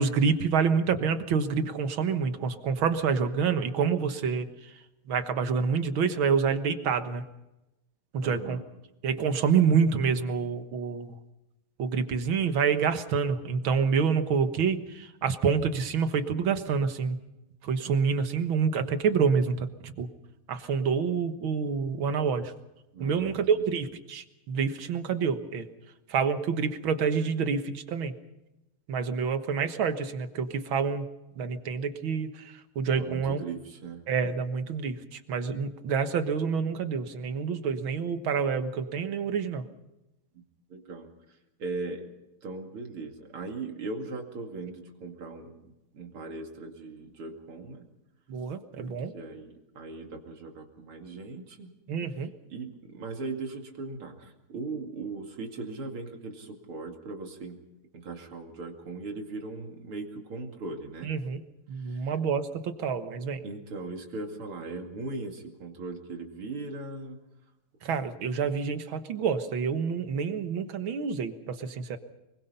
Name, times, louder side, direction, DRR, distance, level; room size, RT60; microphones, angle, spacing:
voice 1, 0.0-4.5 5.1-7.2 8.1-8.6 9.0-11.2 11.8-17.2 17.6-20.1 20.5-22.5 23.0-25.7 26.1-28.1 28.9-31.1 31.4-33.4 34.1-39.6 48.3-49.1 51.9-52.3 61.0-61.4 61.7-63.4 67.8-72.0, right 6 dB, 70° right, 9 dB, 2.1 m, -27 dB
voice 2, 8.2-8.6 22.9-23.6 32.9-34.0 40.3-40.4 40.7-41.1 41.6-42.1 42.4-45.6 45.9-47.8 48.8-51.7 52.5-57.6 57.9-61.1 61.8-62.1 63.4-67.2, right 3 dB, 90° right, 3 dB, 3.3 m, -39 dB
25.0 x 22.0 x 5.6 m, 0.94 s
omnidirectional pair, 2.3 m